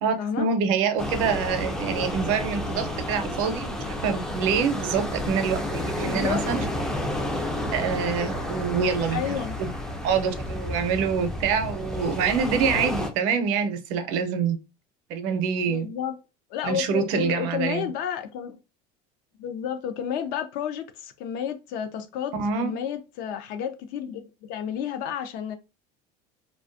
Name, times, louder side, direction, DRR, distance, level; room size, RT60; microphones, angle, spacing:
voice 1, 0.0-6.6 7.7-9.7 10.0-14.6 15.1-15.9 16.6-17.9 22.4-22.7, right 6 dB, 75° right, 0.6 m, -26 dB
sound 1, 1.0-13.1, left 1 dB, 5° left, 0.3 m, -31 dB
voice 2, 6.0-6.4 9.1-9.6 15.7-16.2 16.5-18.6 19.4-22.3 22.6-25.6, left 9 dB, 60° left, 0.5 m, -31 dB
2.5 x 2.2 x 2.4 m
cardioid pair, 140°, 17 cm